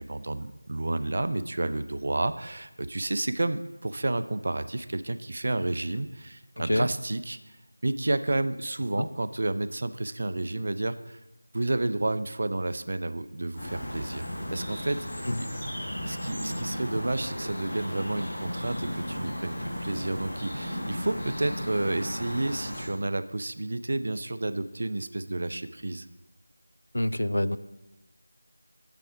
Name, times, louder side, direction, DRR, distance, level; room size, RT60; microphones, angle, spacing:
voice 1, 0.0-7.4 7.8-11.2 11.5-15.5 16.0-26.1, right 2 dB, 35° right, 13 dB, 0.3 m, -31 dB
sound 1, 13.6-22.8, equal, 20° left, 1.5 m, -35 dB
voice 2, 26.9-27.6, left 1 dB, 90° left, 15 dB, 0.4 m, -26 dB
8.3 x 6.6 x 4.9 m, 1.0 s
figure-of-eight pair, 180°, 0 cm